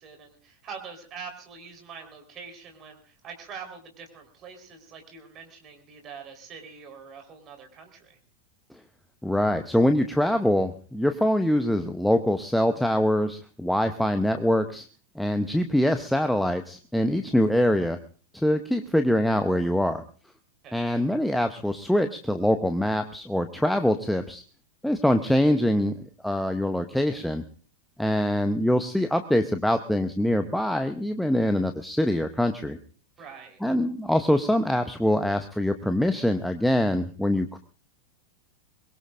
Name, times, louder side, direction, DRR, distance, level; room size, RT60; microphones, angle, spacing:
voice 1, 0.0-8.2 20.6-21.1 27.2-27.3 33.2-33.6, right 6 dB, 30° right, 4 dB, 4.3 m, -44 dB
voice 2, 9.2-14.8 15.2-18.0 18.3-20.0 20.7-24.4 24.8-25.9 26.2-27.4 28.0-32.8 33.6-37.6, left 1 dB, ahead, 7 dB, 0.9 m, -24 dB
23.5 x 21.5 x 2.6 m, 0.43 s
figure-of-eight pair, 90°, 0 cm